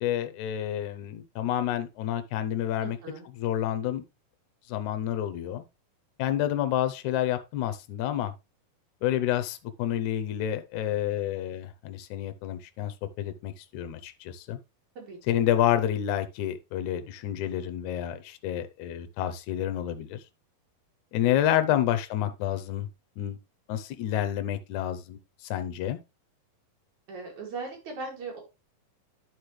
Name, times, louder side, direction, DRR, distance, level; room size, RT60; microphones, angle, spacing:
voice 1, 0.0-3.0 3.3-4.0 4.7-5.6 6.2-8.3 9.0-14.6 15.3-20.2 21.1-22.9 23.2-23.4 23.7-25.2 25.5-26.0, left 11 dB, 75° left, 1.8 m, -29 dB
voice 2, 2.8-3.3 15.0-15.4 21.8-21.9 27.1-28.4, right 3 dB, 55° right, 3.5 m, -39 dB
10.5 x 4.7 x 3.2 m
omnidirectional pair, 4.3 m